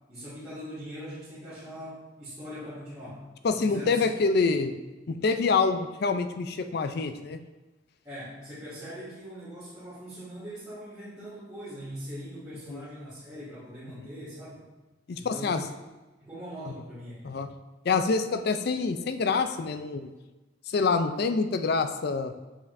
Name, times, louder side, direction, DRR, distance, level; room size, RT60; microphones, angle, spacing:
voice 1, 0.1-3.2 3.6-4.0 8.0-14.6 15.2-15.6 16.2-17.2, equal, 20° right, -14 dB, 2.1 m, -41 dB
voice 2, 3.4-4.8 5.1-7.4 12.7-12.8 14.0-14.1 15.1-15.6 17.2-17.5 17.8-20.1 20.7-22.3, left 4 dB, 55° left, 8 dB, 0.4 m, -26 dB
7.1 x 5.2 x 2.6 m, 1.1 s
head